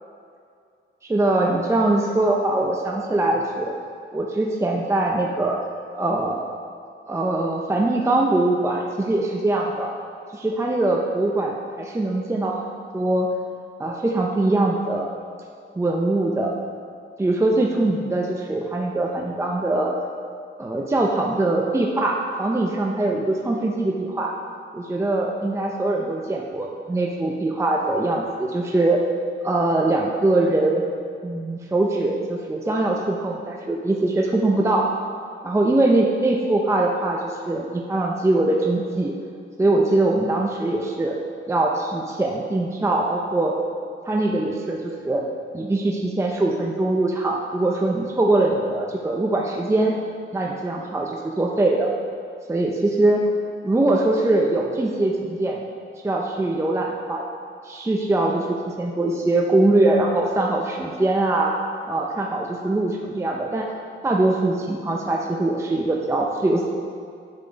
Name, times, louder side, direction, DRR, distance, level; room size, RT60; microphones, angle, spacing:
voice 1, 1.0-3.7 4.1-5.6 5.9-6.5 7.1-9.9 10.3-12.6 12.9-13.3 13.8-15.1 15.8-16.5 17.2-19.9 20.6-24.3 24.7-29.0 29.4-30.8 31.2-34.9 35.4-39.1 39.6-41.2 41.5-43.5 44.1-45.2 45.5-49.9 50.3-51.9 52.5-53.3 53.6-55.6 56.0-57.2 57.6-61.5 61.9-63.7 64.0-66.7, right 2 dB, 15° right, 0 dB, 0.6 m, -22 dB
8.7 x 5.9 x 5.2 m, 2.3 s
wide cardioid pair, 130°, 21 cm